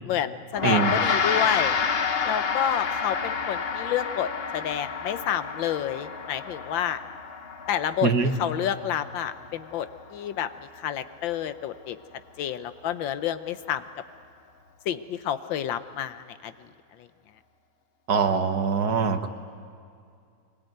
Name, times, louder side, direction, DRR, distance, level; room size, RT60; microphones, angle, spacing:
voice 1, 0.0-1.8 2.2-7.0 7.7-8.1 8.4-10.5 10.8-12.0 12.4-13.8 14.9-16.5, left 10 dB, 80° left, 11 dB, 1.5 m, -29 dB
Gong, 0.5-10.2, left 6 dB, 50° left, 0.8 m, -29 dB
voice 2, 0.6-0.9 8.0-8.3 18.1-19.3, right 5 dB, 60° right, 7 dB, 1.6 m, -23 dB
23.5 x 21.0 x 9.3 m, 2.3 s
omnidirectional pair, 2.1 m